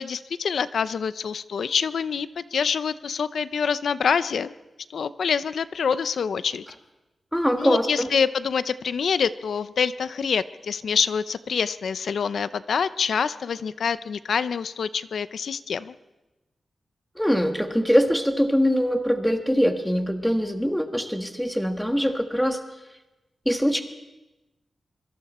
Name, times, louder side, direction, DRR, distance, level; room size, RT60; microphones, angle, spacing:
voice 1, 0.0-4.5 4.9-6.6 7.6-15.9, left 6 dB, 80° left, 14 dB, 0.7 m, -26 dB
voice 2, 7.3-8.1 17.2-22.6 23.4-23.8, equal, ahead, 6 dB, 1.5 m, -23 dB
25.5 x 23.5 x 4.3 m, 1.0 s
wide cardioid pair, 175°, 0 cm